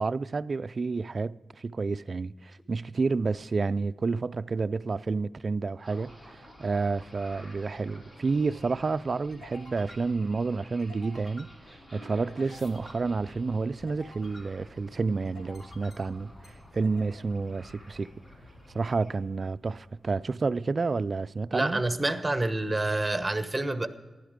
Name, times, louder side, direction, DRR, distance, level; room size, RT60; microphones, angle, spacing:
voice 1, 0.0-16.3 16.7-18.1 18.7-21.8, right 4 dB, 50° right, 0.4 m, -30 dB
sound 1, 5.8-20.2, equal, 40° left, 5.9 m, -53 dB
sound 2, 8.0-19.7, left 1 dB, 65° left, 2.3 m, -52 dB
voice 2, 21.5-23.9, right 2 dB, 15° right, 1.2 m, -28 dB
15.0 x 11.5 x 5.1 m
cardioid pair, 65°, 0 cm